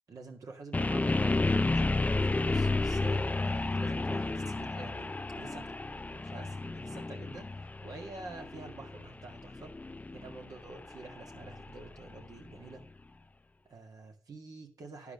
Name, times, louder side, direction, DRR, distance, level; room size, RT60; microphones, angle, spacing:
voice 1, 0.1-5.8 6.1-7.5 7.8-9.7 10.2-12.9 13.6-15.1, right 3 dB, 65° right, 2 dB, 2.0 m, -48 dB
sound 1, 0.7-12.7, left 2 dB, 25° left, 0.4 m, -32 dB
10.5 x 4.8 x 6.5 m, 0.41 s
supercardioid pair, 40°, 7 cm